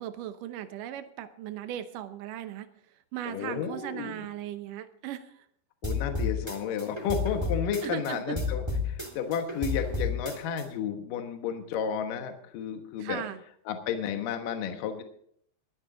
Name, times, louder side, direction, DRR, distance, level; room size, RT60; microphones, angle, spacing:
voice 1, 0.0-5.5 7.8-8.4 13.0-13.4, right 11 dB, 75° right, 10 dB, 2.0 m, -38 dB
voice 2, 3.3-4.2 5.8-13.2 13.7-15.0, left 7 dB, 65° left, 5 dB, 2.6 m, -32 dB
sound 1, 5.8-8.1 8.4-10.6, left 4 dB, 10° right, 1.6 m, -31 dB
22.5 x 9.9 x 3.8 m, 0.65 s
omnidirectional pair, 4.8 m